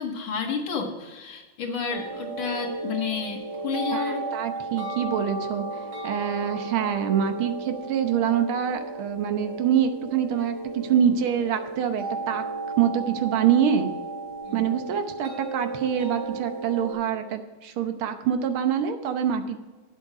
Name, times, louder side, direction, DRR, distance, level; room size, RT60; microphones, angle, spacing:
voice 1, 0.0-4.2 14.4-14.6, left 5 dB, 70° left, 2 dB, 2.3 m, -31 dB
sound 1, 1.9-16.9, right 3 dB, 55° right, 3.1 m, -34 dB
voice 2, 3.9-12.4 12.8-13.9 14.5-19.6, right 8 dB, 80° right, 8 dB, 1.8 m, -25 dB
10.5 x 7.8 x 4.9 m, 1.3 s
omnidirectional pair, 2.3 m